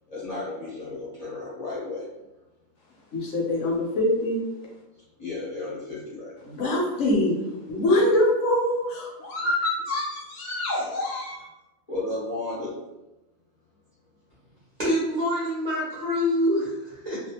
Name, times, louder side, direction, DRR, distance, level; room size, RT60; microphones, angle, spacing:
voice 1, 0.1-2.1 5.2-6.3 11.9-12.7, left 2 dB, 40° left, -9 dB, 0.5 m, -33 dB
voice 2, 3.1-4.4 6.4-7.4 7.7-11.5, left 1 dB, 65° left, -3 dB, 0.9 m, -24 dB
voice 3, 14.8-17.2, left 1 dB, 45° right, -9 dB, 0.6 m, -25 dB
2.4 x 2.3 x 2.7 m, 1.0 s
omnidirectional pair, 1.5 m